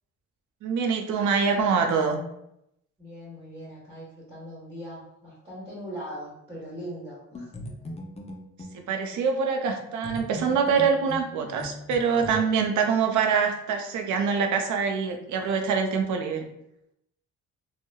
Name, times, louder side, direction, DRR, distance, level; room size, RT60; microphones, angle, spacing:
voice 1, 0.6-2.2 8.7-16.4, right 5 dB, 75° right, 4 dB, 0.5 m, -25 dB
voice 2, 3.0-7.5, equal, 20° right, -9 dB, 1.2 m, -40 dB
sound 1, 7.3-8.8 10.0-12.3, left 1 dB, 20° left, 0.4 m, -39 dB
3.0 x 2.1 x 2.2 m, 0.81 s
cardioid pair, 90°, 30 cm